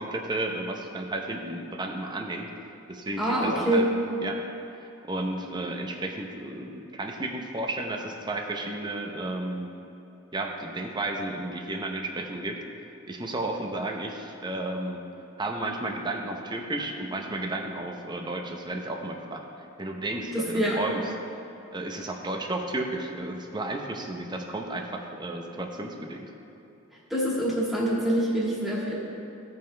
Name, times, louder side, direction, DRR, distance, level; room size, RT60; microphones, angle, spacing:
voice 1, 0.0-2.5 2.9-3.8 4.2-4.5 4.7-9.7 10.3-12.6 13.1-15.0 15.4-19.4 19.8-21.0 21.7-26.3, right 2 dB, 20° right, 2 dB, 0.7 m, -33 dB
voice 2, 3.2-3.9 20.3-20.8 27.1-29.0, right 1 dB, ahead, -7 dB, 1.9 m, -25 dB
15.5 x 5.4 x 3.3 m, 2.9 s
head